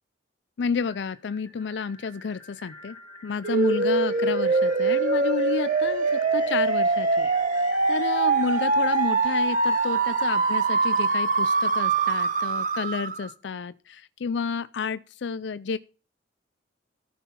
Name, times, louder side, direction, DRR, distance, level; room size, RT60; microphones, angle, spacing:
voice 1, 0.6-3.0 3.2-6.0 6.3-7.3 7.9-15.8, left 5 dB, 85° left, 0.4 m, -30 dB
sound 1, 0.8-12.7, left 2 dB, 15° left, 3.7 m, -45 dB
sound 2, 3.4-13.3, right 4 dB, 50° right, 1.0 m, -23 dB
14.0 x 5.6 x 5.7 m
head